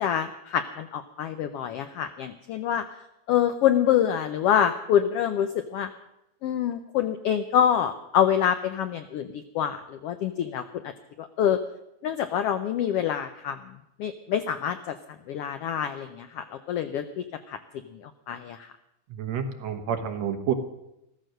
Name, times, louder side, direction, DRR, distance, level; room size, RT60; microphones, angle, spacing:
voice 1, 0.0-2.8 3.3-5.9 6.4-10.6 11.2-11.6 12.0-13.6 14.0-15.0 15.3-17.6 18.3-18.7, left 9 dB, 80° left, 10 dB, 1.3 m, -26 dB
voice 2, 19.1-20.5, right 8 dB, 65° right, 6 dB, 2.3 m, -29 dB
14.5 x 14.0 x 6.5 m, 0.86 s
omnidirectional pair, 3.4 m